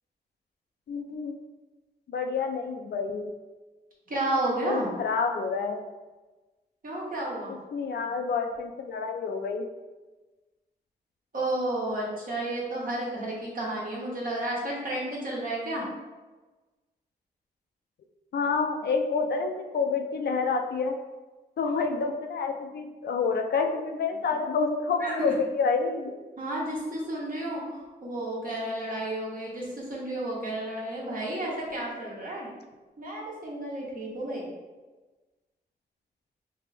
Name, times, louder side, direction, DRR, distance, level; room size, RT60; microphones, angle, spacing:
voice 1, 0.9-1.3 2.1-3.3 4.6-5.8 7.7-9.7 18.3-20.9 21.6-26.1, left 4 dB, 75° left, 4 dB, 0.5 m, -28 dB
voice 2, 4.1-4.9 6.8-7.5 11.3-15.8 25.0-25.3 26.4-32.5 33.0-34.4, right 1 dB, 55° right, -4 dB, 1.3 m, -32 dB
3.4 x 2.8 x 3.3 m, 1.2 s
cardioid pair, 60°, 17 cm